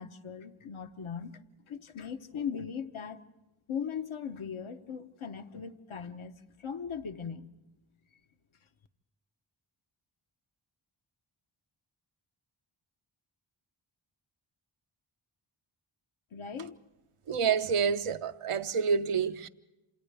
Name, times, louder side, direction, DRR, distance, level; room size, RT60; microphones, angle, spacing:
voice 1, 0.0-1.3 1.7-3.2 3.7-6.3 6.6-7.5 16.3-16.8, left 7 dB, 75° left, 1.1 m, -39 dB
voice 2, 17.3-19.5, right 6 dB, 90° right, 0.8 m, -28 dB
28.0 x 27.5 x 3.4 m
cardioid pair, 40°, 50 cm